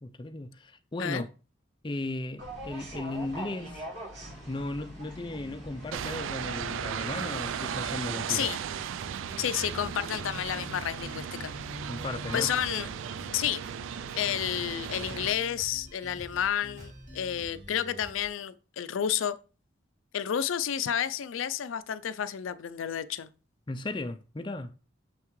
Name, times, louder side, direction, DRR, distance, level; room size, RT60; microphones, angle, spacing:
voice 1, 0.0-1.3 1.8-3.9 4.5-8.5 11.9-12.5 23.7-24.7, left 2 dB, 25° left, 0.4 m, -36 dB
sound 1, 2.4-7.9, right 1 dB, 60° right, 3.2 m, -43 dB
sound 2, 5.4-18.3, left 1 dB, 35° right, 1.8 m, -46 dB
sound 3, 5.9-15.3, right 8 dB, 75° right, 0.3 m, -36 dB
voice 2, 8.3-8.6 9.4-11.5 12.3-12.9 13.3-13.6 14.1-19.4 20.1-23.3, left 9 dB, 80° left, 0.4 m, -31 dB
7.0 x 5.7 x 3.1 m
head